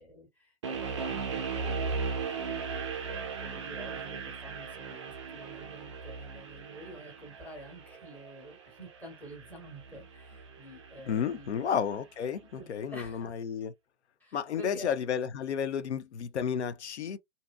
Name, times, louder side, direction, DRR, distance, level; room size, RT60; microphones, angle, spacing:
voice 1, 0.0-2.6 3.0-11.8 12.3-13.4 14.2-14.9, right 1 dB, 5° left, 1.0 m, -48 dB
sound 1, 0.6-11.7, right 5 dB, 25° right, 0.4 m, -38 dB
voice 2, 11.1-13.7 14.3-17.2, left 7 dB, 65° left, 0.5 m, -32 dB
2.6 x 2.3 x 2.2 m
figure-of-eight pair, 120°, 37 cm